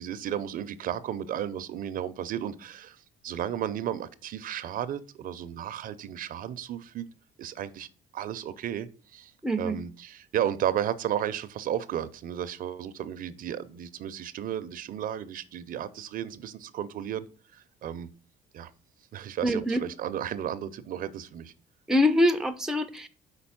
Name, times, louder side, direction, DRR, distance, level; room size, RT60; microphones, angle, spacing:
voice 1, 0.0-3.0 3.2-7.1 7.4-7.9 8.1-9.3 9.6-17.3 17.5-18.1 18.5-18.7 19.1-21.5, right 10 dB, 55° right, 0.5 m, -33 dB
voice 2, 9.4-9.8 19.4-19.8 21.9-23.1, left 1 dB, 5° right, 0.5 m, -24 dB
5.2 x 4.0 x 5.7 m
cardioid pair, 110°, 17 cm